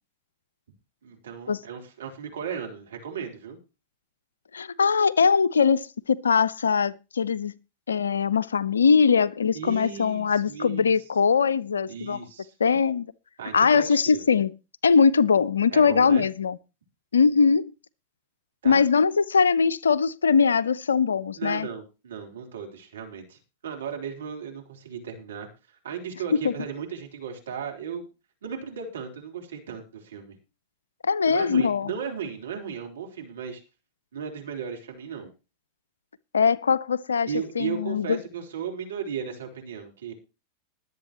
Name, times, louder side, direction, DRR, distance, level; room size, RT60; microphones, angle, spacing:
voice 1, 1.0-3.6 9.5-10.9 11.9-12.5 13.4-14.2 15.7-16.3 18.6-18.8 21.4-28.0 28.4-30.4 31.2-33.6 34.1-35.3 37.3-40.1, right 7 dB, 65° right, 3.8 m, -36 dB
voice 2, 4.5-7.5 7.9-12.2 12.6-13.1 13.5-14.5 14.8-16.6 17.1-17.7 18.6-21.7 26.4-26.5 31.0-31.9 36.3-37.3 37.6-38.2, left 5 dB, 70° left, 0.5 m, -21 dB
21.5 x 8.1 x 3.0 m
figure-of-eight pair, 90°, 0 cm